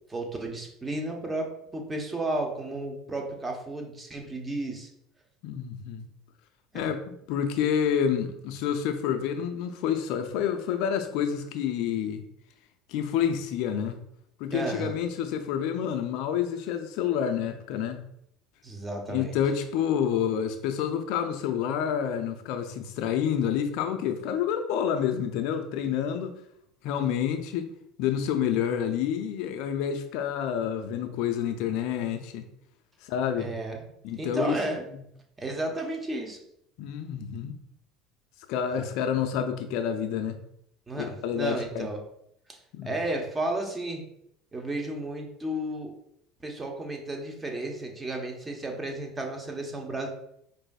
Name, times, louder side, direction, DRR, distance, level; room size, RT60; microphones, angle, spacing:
voice 1, 0.1-4.9 6.7-6.9 14.5-14.9 18.6-19.3 33.4-33.9 34.2-34.8 35.4-36.4 38.7-38.9 40.9-42.0 42.5-42.6 42.8-44.0 44.5-45.9 46.4-50.1, right 2 dB, 20° right, 1 dB, 0.9 m, -33 dB
voice 2, 5.4-6.0 6.7-12.2 12.9-14.0 14.4-18.0 19.1-26.3 26.8-27.7 28.0-32.4 33.0-33.5 34.0-34.6 36.8-37.6 38.5-40.4 41.0-41.9 42.7-43.0, left 8 dB, 65° left, 6 dB, 0.4 m, -28 dB
4.8 x 2.6 x 2.3 m, 0.74 s
hypercardioid pair, 80°, 0 cm